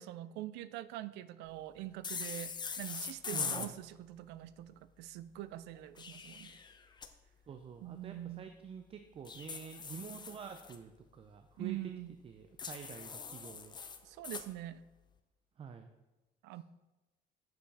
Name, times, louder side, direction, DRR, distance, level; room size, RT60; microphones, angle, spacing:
voice 1, 0.0-6.6 7.8-8.5 11.6-12.2 14.0-14.8 16.4-16.6, right 14 dB, 90° right, 15 dB, 0.4 m, -44 dB
sound 1, 2.0-3.7 5.7-7.1 9.2-10.8 12.6-14.5, left 5 dB, 25° left, 0.6 m, -42 dB
voice 2, 3.3-3.7 7.5-11.8 12.2-13.8 15.6-15.9, right 7 dB, 35° right, 8 dB, 0.5 m, -48 dB
7.7 x 6.7 x 3.4 m, 1.1 s
cardioid pair, 110°, 17 cm